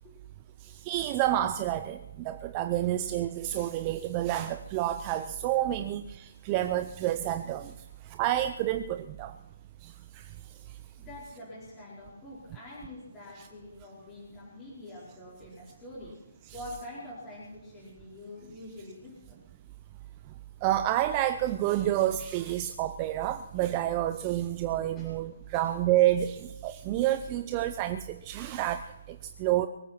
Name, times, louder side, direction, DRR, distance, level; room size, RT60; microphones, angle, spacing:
voice 1, 0.6-7.7 8.1-9.3 9.8-10.2 20.6-29.7, right 13 dB, 20° right, 9 dB, 0.6 m, -29 dB
voice 2, 11.0-19.4 24.9-25.1 25.5-25.7 27.9-28.0, left 1 dB, 15° left, -7 dB, 4.6 m, -45 dB
23.5 x 8.5 x 5.9 m, 0.94 s
hypercardioid pair, 170°, 0 cm